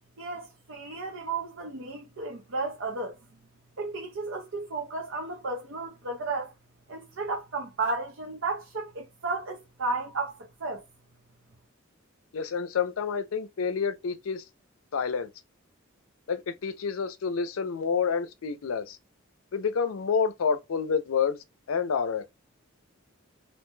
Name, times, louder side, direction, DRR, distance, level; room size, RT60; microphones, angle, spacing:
voice 1, 0.2-3.2 3.8-6.5 6.9-10.8, right 3 dB, 65° right, 0.6 m, -33 dB
voice 2, 12.3-14.4 14.9-15.3 16.3-19.0 19.5-21.4 21.7-22.3, left 6 dB, 85° left, 0.5 m, -28 dB
2.7 x 2.1 x 3.1 m
head